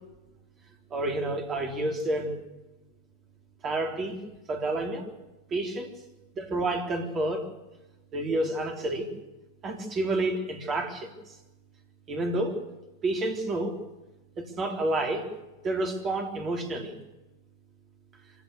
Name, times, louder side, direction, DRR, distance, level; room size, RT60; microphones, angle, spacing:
voice 1, 0.9-2.4 3.6-4.2 4.5-5.1 5.5-5.9 6.4-7.5 8.1-9.1 9.6-11.1 12.1-12.6 13.0-13.8 14.4-15.3 15.6-17.0, right 2 dB, 25° right, 4 dB, 3.7 m, -29 dB
25.5 x 16.5 x 6.8 m, 1.1 s
figure-of-eight pair, 90°, 0 cm